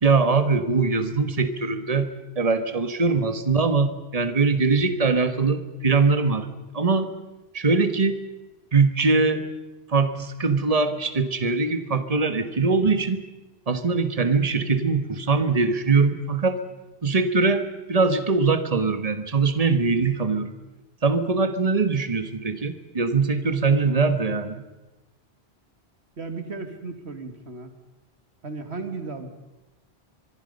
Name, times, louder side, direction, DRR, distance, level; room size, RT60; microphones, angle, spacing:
voice 1, 0.0-6.5 6.7-7.1 7.5-8.2 8.7-9.4 9.9-13.2 13.7-16.6 17.0-17.6 17.9-20.5 21.0-24.6, right 4 dB, 35° right, 10 dB, 1.5 m, -22 dB
voice 2, 26.2-27.7 28.4-29.3, right 3 dB, 90° right, 7 dB, 2.4 m, -35 dB
24.5 x 23.0 x 5.4 m, 1.1 s
omnidirectional pair, 1.1 m